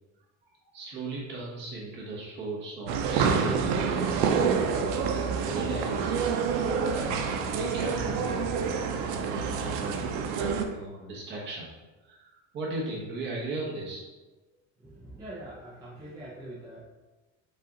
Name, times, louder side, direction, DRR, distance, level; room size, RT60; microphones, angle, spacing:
voice 1, 0.6-6.1 6.8-11.7 12.0-14.1, right 2 dB, 30° right, -4 dB, 1.1 m, -37 dB
sound 1, 2.9-10.6, right 6 dB, 85° right, 0.6 m, -27 dB
voice 2, 14.8-16.8, right 1 dB, 10° right, -8 dB, 0.6 m, -43 dB
5.5 x 2.5 x 3.9 m, 1.2 s
cardioid pair, 180°, 34 cm